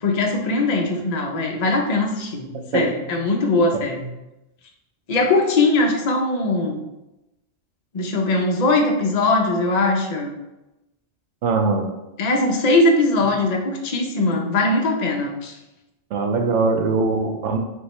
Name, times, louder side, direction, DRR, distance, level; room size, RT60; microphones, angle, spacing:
voice 1, 0.0-4.0 5.1-6.8 7.9-10.3 12.2-15.6, left 2 dB, 45° left, 1 dB, 0.7 m, -20 dB
voice 2, 11.4-11.9 16.1-17.6, right 4 dB, 85° right, 4 dB, 0.9 m, -21 dB
5.4 x 3.1 x 3.1 m, 0.96 s
omnidirectional pair, 1.2 m